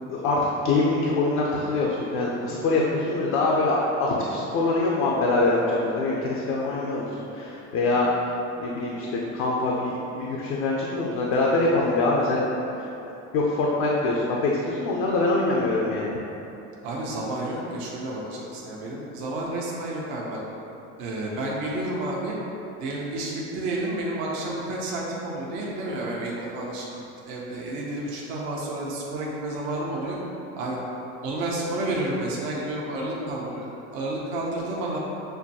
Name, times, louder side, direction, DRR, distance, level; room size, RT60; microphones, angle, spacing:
voice 1, 0.1-8.3 8.6-12.5 12.8-12.9 13.3-16.1, left 2 dB, 65° left, -3 dB, 0.6 m, -24 dB
voice 2, 16.8-20.4 21.0-22.4 22.8-26.9 27.3-30.2 30.6-30.8 31.2-35.0, right 2 dB, 70° right, -4 dB, 0.9 m, -30 dB
6.5 x 2.2 x 2.8 m, 3.0 s
hypercardioid pair, 75°, 40 cm